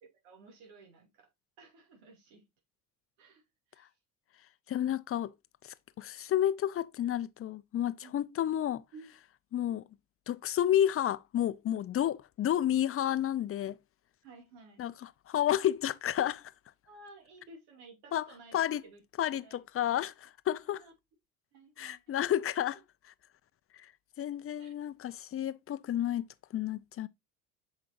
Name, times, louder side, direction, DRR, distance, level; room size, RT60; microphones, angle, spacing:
voice 1, 0.2-1.3 1.6-2.4 3.2-3.4 3.7-3.9 8.0-8.1 8.9-9.1 14.2-14.8 16.9-18.6 18.8-19.0 19.4-19.6 20.7-20.9 21.5-22.1 22.7-22.8 24.6-24.7, right 3 dB, 65° right, 2.7 m, -54 dB
voice 2, 4.7-5.3 5.6-8.8 9.5-9.8 10.3-13.8 14.8-16.5 18.1-18.3 18.5-18.8 19.2-20.8 21.8-22.8 23.7-23.9 24.2-26.2 26.5-27.1, left 11 dB, 30° left, 0.6 m, -31 dB
7.6 x 5.2 x 2.6 m
hypercardioid pair, 70°, 45 cm